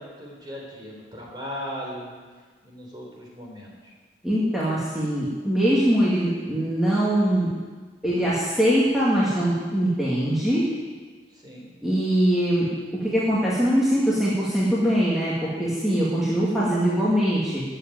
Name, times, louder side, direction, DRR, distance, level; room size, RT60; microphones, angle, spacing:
voice 1, 0.0-4.0 11.3-11.7, equal, 25° right, -2 dB, 3.5 m, -38 dB
voice 2, 4.2-7.5 8.0-10.6 11.8-12.7 13.0-15.3 15.6-17.6, equal, ahead, -8 dB, 2.1 m, -22 dB
13.0 x 7.7 x 9.2 m, 1.4 s
head